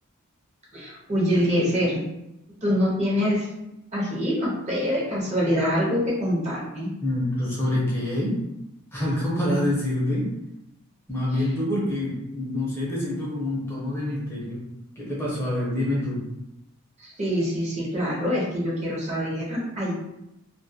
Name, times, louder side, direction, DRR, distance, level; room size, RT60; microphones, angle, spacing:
voice 1, 0.7-2.0 2.6-3.5 3.9-6.9 11.3-11.5 17.0-19.9, equal, 30° right, -4 dB, 0.6 m, -25 dB
voice 2, 7.0-8.4 8.9-10.3 11.1-14.6 15.0-16.2, left 1 dB, 10° left, -6 dB, 0.5 m, -26 dB
2.2 x 2.1 x 2.6 m, 0.87 s
head